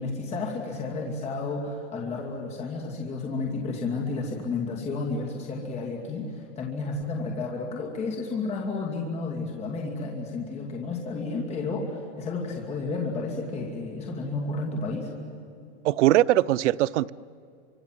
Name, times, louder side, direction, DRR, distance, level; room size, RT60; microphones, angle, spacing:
voice 1, 0.0-15.1, left 3 dB, 20° left, 2.7 m, -32 dB
voice 2, 15.8-17.1, right 15 dB, 85° right, 0.6 m, -21 dB
29.5 x 25.5 x 7.8 m
supercardioid pair, 170°, 35 cm